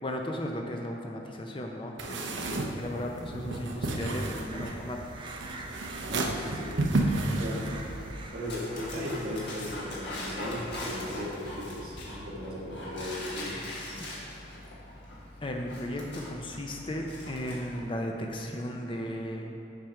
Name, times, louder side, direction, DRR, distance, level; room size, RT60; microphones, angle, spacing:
voice 1, 0.0-5.0 15.4-19.5, equal, 25° left, 2 dB, 0.5 m, -35 dB
sound 1, 2.0-8.1, right 2 dB, 75° right, 0.7 m, -32 dB
sound 2, 4.1-11.4, right 2 dB, 25° right, 0.5 m, -46 dB
Dog, 5.8-17.9, left 1 dB, 60° left, 1.6 m, -42 dB
voice 2, 6.1-6.9 7.3-7.7 8.3-13.6, equal, 50° right, -4 dB, 1.5 m, -37 dB
7.5 x 5.1 x 5.8 m, 2.9 s
head